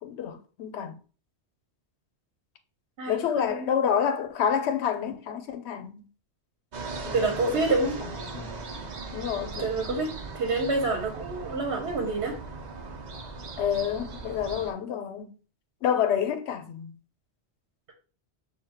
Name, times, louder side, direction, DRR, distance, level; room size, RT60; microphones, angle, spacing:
voice 1, 0.0-1.0 3.1-6.0 7.0-7.8 8.3-8.6 9.1-10.0 13.6-15.3 15.8-16.9, left 8 dB, 85° left, 0.9 m, -29 dB
voice 2, 3.0-3.6 7.1-8.0 9.6-12.4, right 3 dB, 75° right, 1.0 m, -28 dB
sound 1, 6.7-14.7, right 3 dB, 45° right, 0.7 m, -38 dB
6.5 x 2.4 x 2.8 m
omnidirectional pair, 1.1 m